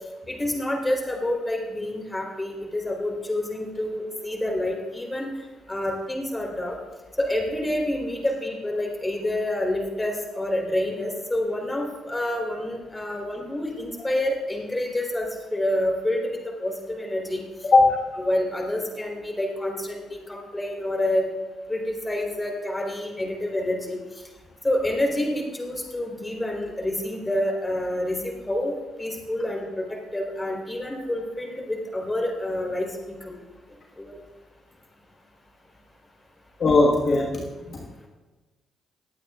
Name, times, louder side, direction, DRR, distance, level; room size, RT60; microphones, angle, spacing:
voice 1, 0.3-5.3 5.7-6.8 7.2-17.4 18.2-21.3 21.7-24.0 24.6-33.4 34.0-34.1, left 1 dB, 15° left, -1 dB, 4.0 m, -28 dB
voice 2, 36.6-37.8, left 3 dB, 50° left, -2 dB, 1.6 m, -19 dB
21.5 x 8.6 x 2.5 m, 1.2 s
hypercardioid pair, 50°, 0 cm